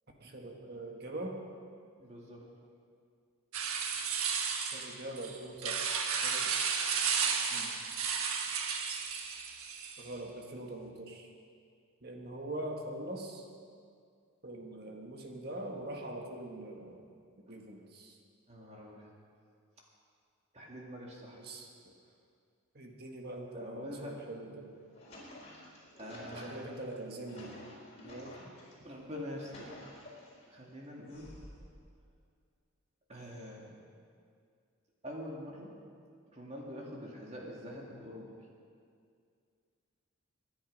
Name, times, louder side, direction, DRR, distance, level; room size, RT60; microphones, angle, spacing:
voice 1, 0.2-1.4 4.6-5.9 6.2-6.5 10.0-11.3 12.0-13.4 14.4-17.1 17.5-18.2 21.4-21.7 22.7-24.7 26.3-27.6 28.0-28.4, right 1 dB, 50° right, 2 dB, 1.6 m, -43 dB
voice 2, 2.0-2.5 7.3-7.7 17.5-17.6 18.5-19.1 20.5-21.4 23.5-24.2 26.0-26.7 28.8-30.0 30.5-31.3 33.1-33.7 35.0-35.7 36.3-38.3, equal, 30° right, -2 dB, 2.3 m, -45 dB
sound 1, 3.5-10.1, right 6 dB, 90° right, 1.4 m, -33 dB
sound 2, 24.8-28.7 29.2-30.4 31.1-31.8, left 1 dB, 30° left, 4.2 m, -51 dB
25.0 x 10.5 x 5.3 m, 2.3 s
head